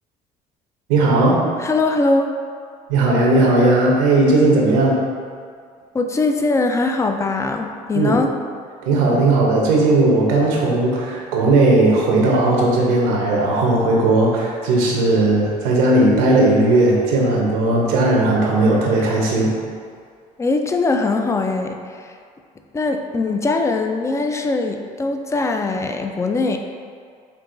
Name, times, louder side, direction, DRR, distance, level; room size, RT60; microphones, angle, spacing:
voice 1, 0.9-1.4 2.9-5.0 7.9-8.1 8.8-19.5, right 2 dB, 85° right, -2 dB, 0.8 m, -16 dB
voice 2, 1.6-2.3 5.9-8.3 20.4-22.2 22.7-26.6, left 3 dB, 15° left, 5 dB, 0.3 m, -21 dB
4.6 x 2.9 x 2.6 m, 2.1 s
supercardioid pair, 80°, 17 cm